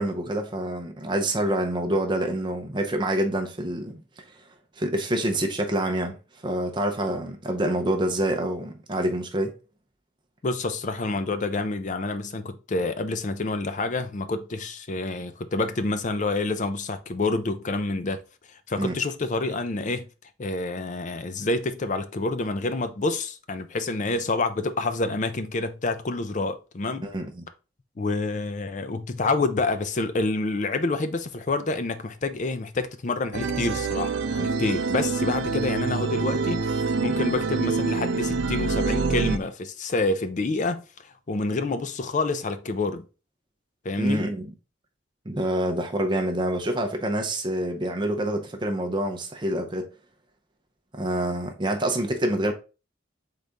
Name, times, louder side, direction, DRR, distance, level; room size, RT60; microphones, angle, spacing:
voice 1, 0.0-4.2 4.8-6.2 6.4-9.5 18.8-19.0 27.0-27.4 44.0-44.5 45.3-49.9 50.9-52.5, right 1 dB, 25° right, 0.6 m, -27 dB
voice 2, 10.4-18.2 18.7-20.1 20.4-27.1 28.0-43.1 43.8-44.2, left 3 dB, 40° left, 0.4 m, -28 dB
sound 1, 33.3-39.4, right 4 dB, 70° right, 0.5 m, -26 dB
4.1 x 3.8 x 3.4 m
head